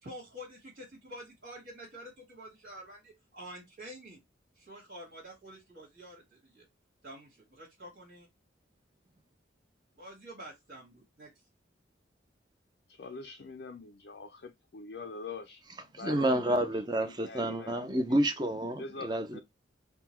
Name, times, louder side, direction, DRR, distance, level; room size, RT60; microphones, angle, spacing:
voice 1, 0.0-4.2 4.5-6.7 7.0-8.3 10.0-11.3, equal, 65° right, 1.6 m, -48 dB
voice 2, 13.0-15.6 16.0-16.5 17.1-18.2 18.8-19.4, left 4 dB, 55° left, 0.4 m, -44 dB
voice 3, 15.9-19.4, right 1 dB, 20° right, 0.6 m, -29 dB
3.8 x 2.2 x 4.4 m
head